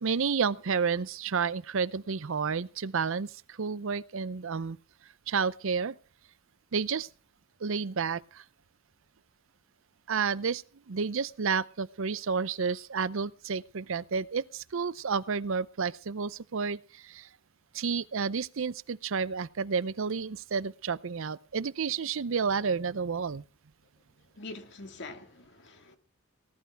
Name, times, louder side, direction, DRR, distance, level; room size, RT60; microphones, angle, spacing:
voice 1, 0.0-4.8 5.3-6.0 6.7-7.1 7.6-8.4 10.1-17.3 17.7-23.4, right 5 dB, 70° right, 0.6 m, -31 dB
voice 2, 24.4-26.0, left 2 dB, 60° left, 2.2 m, -44 dB
18.5 x 11.5 x 4.6 m
head